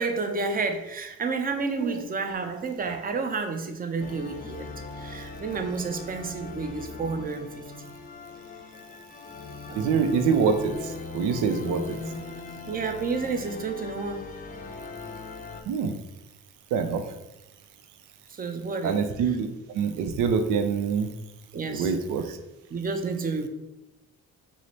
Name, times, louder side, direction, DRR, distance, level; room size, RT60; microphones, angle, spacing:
voice 1, 0.0-4.7 5.0-7.9 9.7-10.0 12.7-14.2 18.3-19.4 21.5-22.0 22.2-22.3 22.7-23.5, right 4 dB, 30° right, 6 dB, 0.5 m, -30 dB
sound 1, 4.0-15.6, left 3 dB, 30° left, 0.5 m, -40 dB
voice 2, 9.8-12.0 15.7-15.9 16.7-17.0 18.8-19.5 19.7-21.1 21.7-22.2, right 6 dB, 90° right, 7 dB, 0.5 m, -25 dB
4.8 x 2.0 x 4.1 m, 0.95 s
cardioid pair, 90°, 30 cm